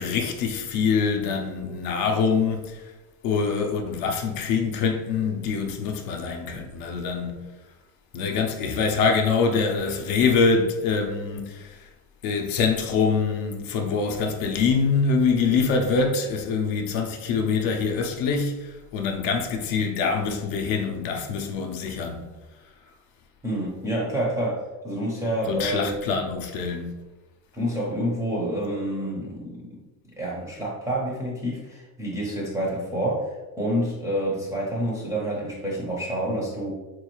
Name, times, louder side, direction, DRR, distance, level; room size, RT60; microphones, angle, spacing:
voice 1, 0.0-2.8 3.2-7.5 8.1-11.9 12.2-22.3 25.5-27.0, left 5 dB, 55° left, 0.5 m, -24 dB
voice 2, 23.4-26.0 27.5-29.8 30.2-36.7, right 1 dB, 5° right, 0.5 m, -28 dB
4.2 x 2.3 x 3.0 m
cardioid pair, 160°, 44 cm